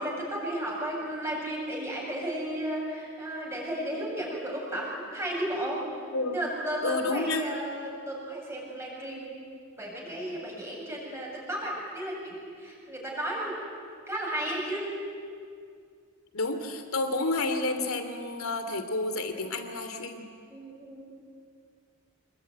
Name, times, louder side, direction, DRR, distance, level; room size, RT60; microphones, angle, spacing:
voice 1, 0.0-9.4 9.8-13.7 14.1-15.0 20.5-21.1, right 1 dB, 10° right, -3 dB, 7.7 m, -34 dB
voice 2, 6.8-7.5 16.3-20.2, left 2 dB, 90° left, 7 dB, 2.9 m, -30 dB
27.0 x 21.5 x 9.6 m, 2.2 s
head